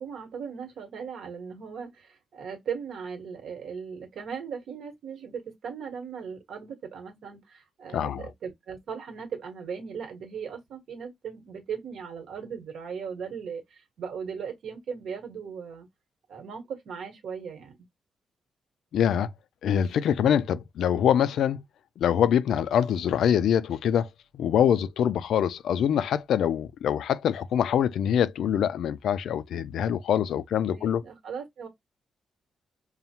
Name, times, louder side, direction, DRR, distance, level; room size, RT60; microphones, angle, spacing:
voice 1, 0.0-15.9 16.3-17.8 30.7-31.7, right 6 dB, 70° right, 1.2 m, -38 dB
voice 2, 7.9-8.3 18.9-19.3 19.6-21.6 22.0-24.1 24.3-31.0, left 9 dB, 80° left, 0.3 m, -24 dB
5.5 x 2.1 x 2.8 m
cardioid pair, 130°, 0 cm